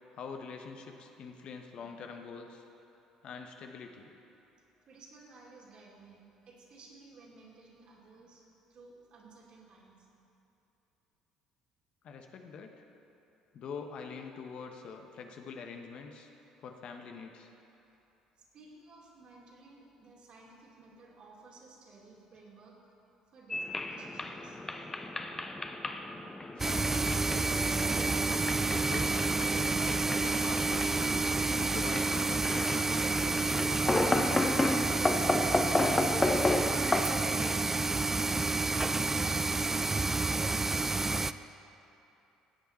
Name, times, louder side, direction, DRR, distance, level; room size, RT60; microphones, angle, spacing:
voice 1, 0.1-2.6 3.2-4.1 12.0-12.8 13.5-16.3 16.6-17.5 26.6-27.6 28.7-29.2 29.6-31.2 31.5-32.9, left 5 dB, 55° left, 4 dB, 1.0 m, -44 dB
voice 2, 4.9-8.4 8.7-10.1 18.4-22.8 23.3-24.6 38.7-40.3, right 3 dB, 55° right, -3 dB, 2.7 m, -55 dB
sound 1, 23.5-37.0, left 2 dB, 20° left, 0.8 m, -33 dB
sound 2, 26.6-41.3, right 3 dB, 20° right, 0.4 m, -29 dB
16.0 x 8.1 x 4.3 m, 3.0 s
hypercardioid pair, 60°, 2 cm